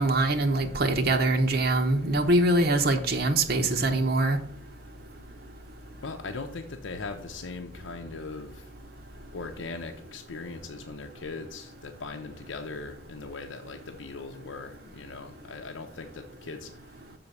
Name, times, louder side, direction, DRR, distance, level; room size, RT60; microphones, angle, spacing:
voice 1, 0.0-4.4, right 2 dB, 55° right, 0.8 m, -23 dB
voice 2, 6.0-8.7 9.3-17.0, left 3 dB, 90° left, 0.7 m, -39 dB
7.0 x 3.9 x 6.5 m
head